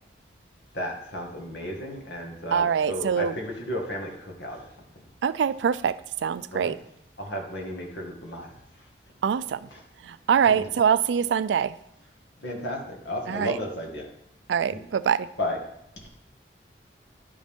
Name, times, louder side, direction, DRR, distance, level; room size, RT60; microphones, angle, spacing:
voice 1, 0.7-4.7 6.5-6.8 7.2-8.5 9.7-9.8 10.5-10.7 12.4-14.1 14.7-14.8 15.4-15.6, equal, 80° left, 1 dB, 1.8 m, -33 dB
voice 2, 2.5-3.3 5.2-6.0 6.2-6.8 9.2-9.6 10.1-11.7 13.3-13.5 14.5-15.3, right 7 dB, 90° right, 16 dB, 0.3 m, -24 dB
11.0 x 5.1 x 3.6 m, 0.78 s
head